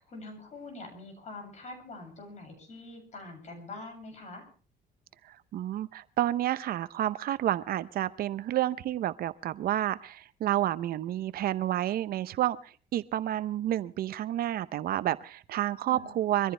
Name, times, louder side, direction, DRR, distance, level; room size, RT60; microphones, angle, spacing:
voice 1, 0.1-4.4 15.9-16.2, left 2 dB, 45° left, 4 dB, 7.1 m, -44 dB
voice 2, 5.2-16.5, right 13 dB, 60° right, 15 dB, 0.8 m, -30 dB
24.0 x 15.0 x 3.3 m, 0.40 s
cardioid pair, 110°, 17 cm